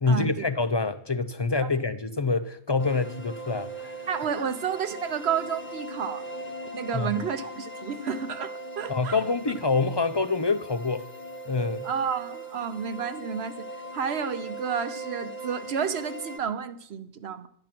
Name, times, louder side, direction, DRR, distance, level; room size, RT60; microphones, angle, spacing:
voice 1, 0.0-3.9 6.9-7.1 8.9-11.1 11.5-11.9, left 3 dB, 40° left, 11 dB, 0.3 m, -26 dB
sound 1, 2.8-16.4, right 1 dB, 10° left, 1.2 m, -39 dB
voice 2, 4.1-9.2 11.8-13.7 13.9-17.5, right 7 dB, 70° right, 11 dB, 1.0 m, -31 dB
12.5 x 9.0 x 5.9 m, 0.68 s
omnidirectional pair, 1.1 m